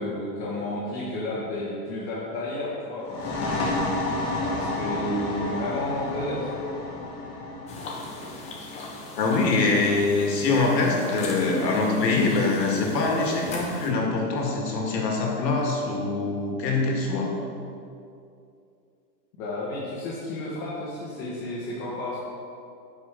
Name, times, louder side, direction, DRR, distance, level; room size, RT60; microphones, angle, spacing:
voice 1, 0.0-3.9 4.4-6.5 19.4-22.2, left 1 dB, 50° left, -7 dB, 1.8 m, -32 dB
sound 1, 3.0-10.4, left 2 dB, 30° left, 1.5 m, -31 dB
sound 2, 7.7-13.9, left 2 dB, 15° left, 0.5 m, -39 dB
voice 2, 9.2-17.3, left 3 dB, 90° left, -1 dB, 1.8 m, -24 dB
9.5 x 5.0 x 3.8 m, 2.5 s
hypercardioid pair, 140°, 49 cm